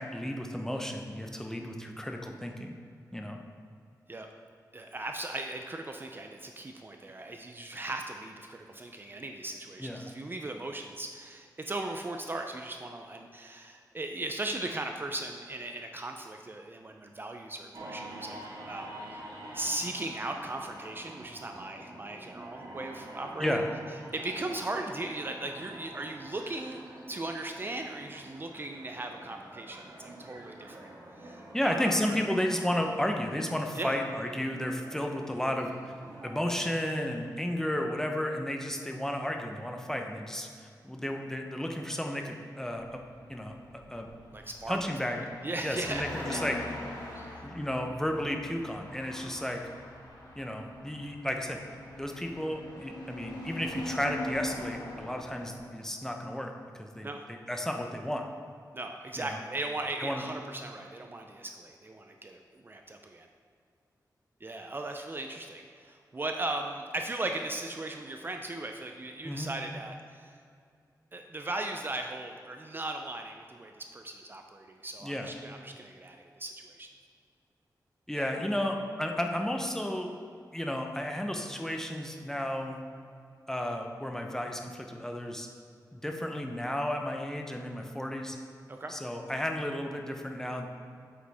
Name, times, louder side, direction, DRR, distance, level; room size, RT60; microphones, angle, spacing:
voice 1, 0.0-2.7 3.1-3.4 9.8-10.1 23.4-23.6 31.5-35.7 36.2-40.5 40.8-43.0 43.3-43.5 43.9-44.1 44.7-45.3 45.6-46.6 47.4-49.6 50.4-51.6 52.0-58.3 59.2-59.4 60.0-60.2 69.2-69.5 75.0-75.3 78.1-80.1 80.5-82.8 83.5-85.5 85.9-88.4 88.9-90.7, left 1 dB, 5° left, 3 dB, 0.8 m, -33 dB
voice 2, 4.7-18.4 18.7-19.2 19.5-23.6 24.1-26.8 27.1-30.9 31.2-31.9 33.8-33.9 44.3-46.4 47.1-47.3 57.0-57.2 58.7-63.3 64.4-70.3 71.1-76.9 78.1-78.5 88.7-88.9, right 2 dB, 30° right, 4 dB, 0.5 m, -38 dB
sound 1, 17.7-36.3, right 1 dB, 70° right, 1.5 m, -47 dB
sound 2, 42.7-55.7, left 1 dB, 90° left, 1.6 m, -43 dB
8.3 x 7.6 x 3.5 m, 2.3 s
wide cardioid pair, 105°, 7 cm